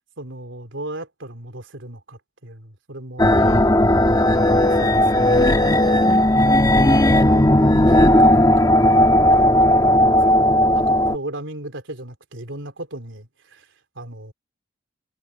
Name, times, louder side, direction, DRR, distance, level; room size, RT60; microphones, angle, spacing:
voice 1, 0.2-3.4 4.5-5.8 6.5-13.7 13.9-14.3, right 1 dB, 85° right, 3.4 m, -37 dB
sound 1, 3.2-11.2, left 1 dB, 20° left, 1.3 m, -15 dB
head